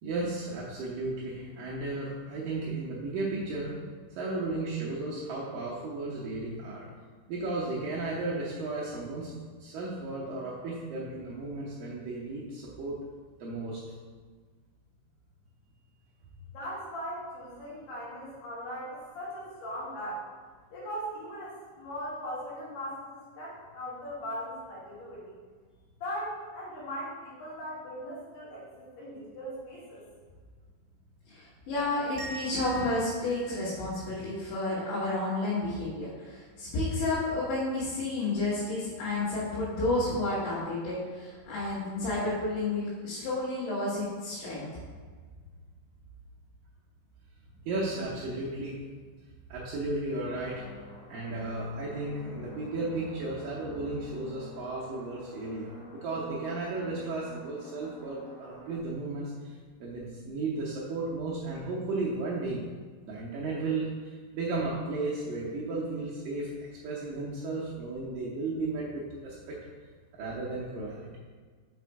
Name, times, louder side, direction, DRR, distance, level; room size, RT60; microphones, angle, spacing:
voice 1, 0.0-3.8 4.2-6.9 7.3-9.3 9.6-13.0 13.4-13.8 47.7-48.8 49.5-50.7 51.1-59.5 59.8-62.6 63.0-66.5 66.8-69.6 70.1-71.2, right 2 dB, 80° right, -6 dB, 2.0 m, -34 dB
voice 2, 16.5-20.3 20.7-25.3 26.0-30.0, equal, 65° left, -7 dB, 3.8 m, -39 dB
voice 3, 31.3-44.8, left 2 dB, 80° left, -10 dB, 4.0 m, -31 dB
sound 1, 32.2-35.0, right 1 dB, 55° right, 1.9 m, -45 dB
sound 2, 50.3-58.8, left 1 dB, 45° left, 2.6 m, -50 dB
6.9 x 5.2 x 4.7 m, 1.6 s
omnidirectional pair, 5.3 m